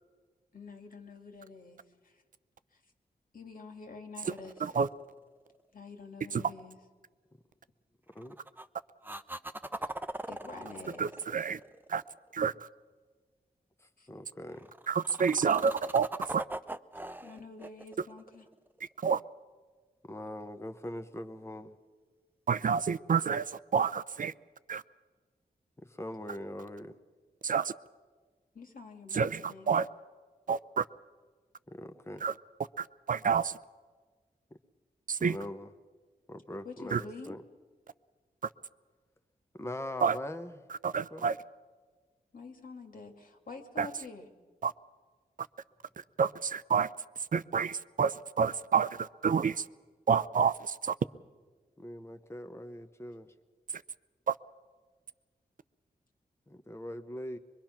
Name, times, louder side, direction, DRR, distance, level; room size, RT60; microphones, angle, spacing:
voice 1, 0.5-2.2 2.7-2.8 3.3-4.8 5.7-6.8 10.3-11.1 14.0-14.1 17.2-18.5 28.5-29.7 36.6-37.4 42.3-44.3, left 3 dB, 65° left, 4 dB, 2.4 m, -47 dB
sound 1, 4.2-5.5 8.1-8.7 9.0-12.3 14.6-18.9 22.7-22.8, right 1 dB, 10° right, 0.7 m, -41 dB
voice 2, 11.0-11.6 11.9-12.0 12.3-12.5 14.9-16.1 16.3-16.4 19.0-19.2 22.5-23.4 23.7-24.3 24.7-24.8 27.4-27.7 29.1-29.9 30.5-30.8 32.2-32.3 32.8-33.5 35.1-35.4 36.9-37.0 40.0-40.2 40.8-41.4 43.8-43.9 44.6-44.7 46.2-46.9 47.3-49.6 50.1-50.7 54.3-54.4, right 6 dB, 60° right, 14 dB, 0.5 m, -28 dB
voice 3, 13.8-14.7 20.1-21.7 25.8-26.9 31.7-32.3 35.2-35.7 36.3-37.4 39.5-40.7 41.1-41.3 51.8-53.3 56.5-57.4, left 1 dB, 15° left, 8 dB, 1.1 m, -42 dB
22.5 x 22.5 x 5.9 m, 1.4 s
cardioid pair, 70°, 16 cm